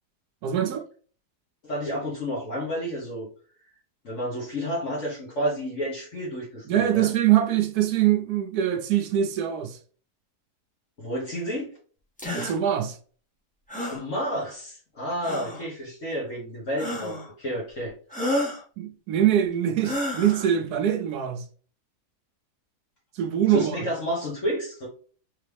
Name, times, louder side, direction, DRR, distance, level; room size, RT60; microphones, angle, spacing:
voice 1, 0.4-0.9 6.7-9.8 12.2-13.0 18.8-21.4 23.1-23.9, right 10 dB, 75° right, 1.1 m, -23 dB
voice 2, 1.6-3.3 4.0-7.1 11.0-11.7 12.4-12.5 13.9-17.9 23.5-24.9, equal, 50° left, 1.6 m, -30 dB
sound 1, 12.2-12.6 13.7-14.0 15.2-15.7 16.8-17.3 18.1-18.6 19.8-20.5, left 1 dB, 5° left, 0.6 m, -30 dB
3.7 x 3.3 x 3.3 m
omnidirectional pair, 1.7 m